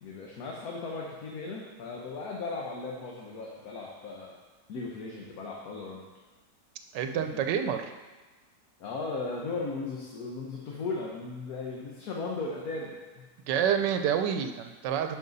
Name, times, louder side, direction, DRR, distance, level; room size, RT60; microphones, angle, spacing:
voice 1, 0.0-4.3 4.7-6.0 7.1-7.4 8.8-13.3, left 3 dB, 65° left, -2 dB, 1.4 m, -37 dB
voice 2, 6.9-7.9 13.5-15.2, right 8 dB, 90° right, 7 dB, 1.3 m, -28 dB
10.5 x 5.2 x 4.0 m, 1.3 s
omnidirectional pair, 1.8 m